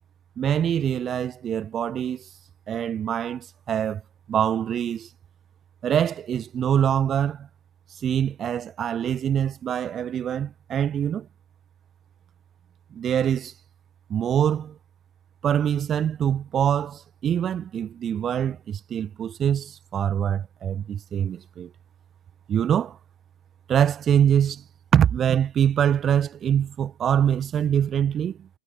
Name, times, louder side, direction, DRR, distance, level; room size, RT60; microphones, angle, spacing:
voice 1, 0.4-2.3 2.7-4.0 4.3-5.1 5.8-7.5 7.9-11.3 12.9-13.5 14.1-14.7 15.4-21.7 22.5-23.0 23.7-24.6 24.9-28.5, right 9 dB, 25° right, 1.6 m, -24 dB
figure-of-eight pair, 90°, 0 cm